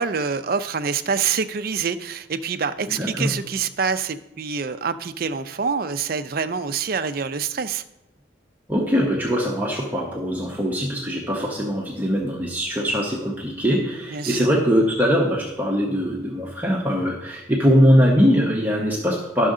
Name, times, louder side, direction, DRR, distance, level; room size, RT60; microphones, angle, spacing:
voice 1, 0.0-7.8 14.1-14.5, right 5 dB, 50° right, 10 dB, 0.5 m, -26 dB
voice 2, 3.0-3.3 8.7-19.5, equal, 10° right, -3 dB, 0.9 m, -21 dB
12.0 x 6.3 x 3.7 m, 0.91 s
head